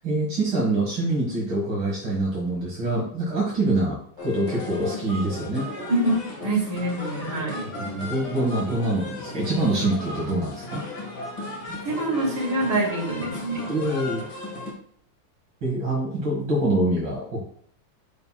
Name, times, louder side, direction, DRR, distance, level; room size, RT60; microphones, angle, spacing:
voice 1, 0.0-5.7 7.8-10.8 13.7-14.2 15.6-17.4, right 2 dB, 85° right, -5 dB, 2.5 m, -25 dB
sound 1, 4.2-14.7, left 2 dB, 60° left, 2.5 m, -36 dB
voice 2, 5.9-7.7 11.8-13.7, right 1 dB, 70° right, -4 dB, 3.1 m, -25 dB
9.3 x 5.6 x 2.3 m, 0.62 s
omnidirectional pair, 2.0 m